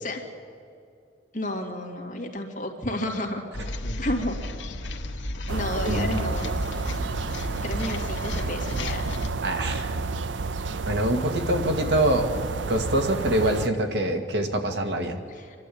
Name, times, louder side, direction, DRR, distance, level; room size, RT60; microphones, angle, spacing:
voice 1, 1.3-3.4 4.0-4.4 5.5-6.5 7.6-9.1 15.3-15.6, left 1 dB, 45° left, 2 dB, 2.2 m, -31 dB
sound 1, 3.5-9.3, left 1 dB, 90° left, 1.3 m, -33 dB
sound 2, 5.5-13.7, right 3 dB, 90° right, 0.6 m, -30 dB
voice 2, 9.4-10.0 10.9-12.3 12.7-15.2, right 1 dB, 70° right, 5 dB, 1.8 m, -25 dB
26.0 x 12.0 x 8.5 m, 2.3 s
head